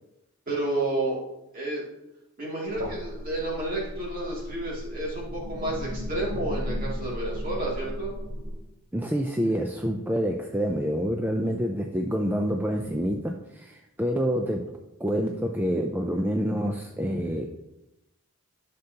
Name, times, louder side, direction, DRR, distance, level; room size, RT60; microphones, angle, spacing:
voice 1, 0.5-1.2 1.5-1.8 2.4-8.1, right 2 dB, 40° right, -4 dB, 2.6 m, -30 dB
sound 1, 2.7-8.5, equal, 90° right, 3.1 m, -35 dB
voice 2, 8.9-14.6 15.0-17.5, equal, 10° right, 2 dB, 0.4 m, -27 dB
11.5 x 6.7 x 2.9 m, 0.93 s
head